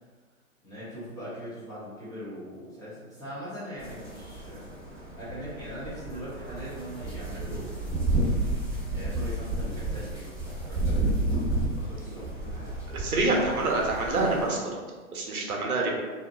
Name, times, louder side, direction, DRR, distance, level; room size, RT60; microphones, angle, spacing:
voice 1, 0.6-4.7 5.1-8.1 8.9-11.5 11.7-12.7, equal, 10° left, -12 dB, 0.5 m, -41 dB
sound 1, 3.8-14.5, right 2 dB, 5° right, 1.2 m, -31 dB
voice 2, 12.9-14.6 15.1-15.9, right 2 dB, 80° right, -1 dB, 0.8 m, -26 dB
2.6 x 2.4 x 2.2 m, 1.4 s
hypercardioid pair, 120°, 43 cm